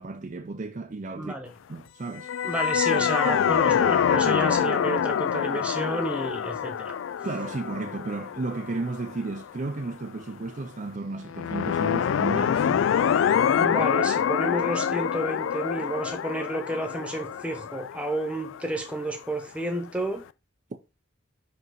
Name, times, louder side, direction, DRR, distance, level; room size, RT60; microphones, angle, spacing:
voice 1, 0.0-1.4 1.7-2.3 7.2-12.9, right 3 dB, 40° right, 0.5 m, -33 dB
voice 2, 1.2-1.5 2.4-7.0 13.5-20.2, right 1 dB, 5° right, 1.1 m, -31 dB
sound 1, 2.2-9.4 11.3-19.1, left 8 dB, 80° left, 0.3 m, -26 dB
5.5 x 5.5 x 3.9 m
head